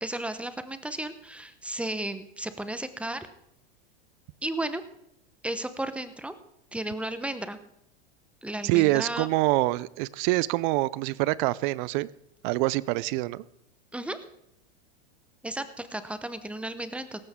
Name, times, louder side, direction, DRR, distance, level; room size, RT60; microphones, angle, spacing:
voice 1, 0.0-3.3 4.4-4.8 5.4-6.3 6.7-7.6 8.4-9.3 13.9-14.2 15.4-17.2, right 1 dB, 5° right, 11 dB, 0.9 m, -34 dB
voice 2, 8.6-12.1 12.4-13.4, right 20 dB, 50° right, 21 dB, 0.5 m, -25 dB
17.0 x 14.5 x 3.7 m, 0.75 s
hypercardioid pair, 115°, 33 cm